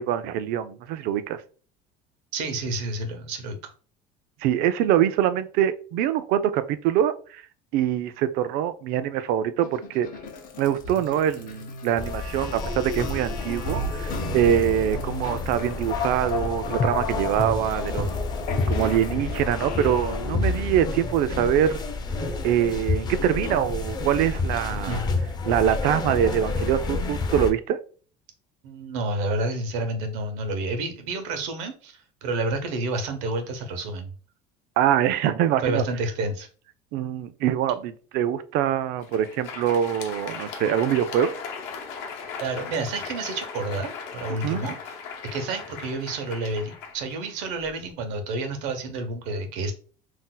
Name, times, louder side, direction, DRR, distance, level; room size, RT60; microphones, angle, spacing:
voice 1, 0.0-1.4 4.4-7.4 7.7-10.1 10.6-18.1 18.7-21.8 22.4-25.0 25.5-27.8 34.8-35.8 36.9-41.4 44.4-44.7, right 10 dB, 60° right, 12 dB, 0.4 m, -24 dB
voice 2, 2.3-3.6 24.9-25.2 28.6-34.1 35.6-36.5 42.4-44.7 45.3-49.7, right 2 dB, 85° right, 7 dB, 0.8 m, -29 dB
sound 1, 9.6-20.9, left 3 dB, 50° left, 0.7 m, -33 dB
sound 2, 12.0-27.5, left 3 dB, 25° left, 0.4 m, -30 dB
Crowd, 38.9-47.8, left 5 dB, 90° left, 0.8 m, -38 dB
2.6 x 2.1 x 3.8 m, 0.40 s
cardioid pair, 150°, 17 cm